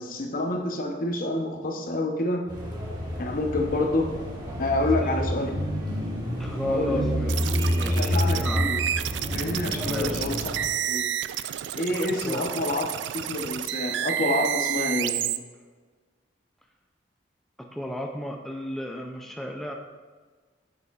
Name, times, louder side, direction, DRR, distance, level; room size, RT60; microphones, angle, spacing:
voice 1, 0.0-2.5 3.2-4.1 4.6-5.5 6.7-7.0 7.9-8.8 9.3-10.4 10.8-11.1 11.8-12.9 13.1-15.2, left 2 dB, 50° left, 3 dB, 0.9 m, -28 dB
sound 1, 2.5-10.7, equal, 25° right, 1.4 m, -29 dB
voice 2, 4.9-5.3 6.4-7.4 7.7-8.7 9.8-10.3 12.2-12.5 17.6-19.7, left 1 dB, ahead, 2 dB, 0.4 m, -33 dB
sound 2, 7.3-15.4, right 11 dB, 70° right, 0.3 m, -30 dB
9.2 x 6.7 x 2.4 m, 1.4 s
head